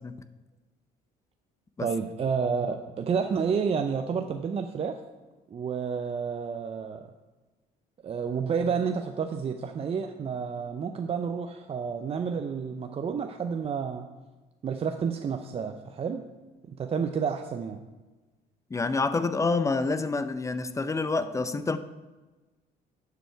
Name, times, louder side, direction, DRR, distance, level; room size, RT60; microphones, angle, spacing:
voice 1, 1.8-5.0 5.5-7.1 8.0-14.1 14.6-16.2 16.7-17.8, right 6 dB, 35° right, 0.6 m, -30 dB
voice 2, 18.7-21.8, left 3 dB, 20° left, 0.5 m, -27 dB
11.0 x 7.0 x 4.6 m
cardioid pair, 110°, 17 cm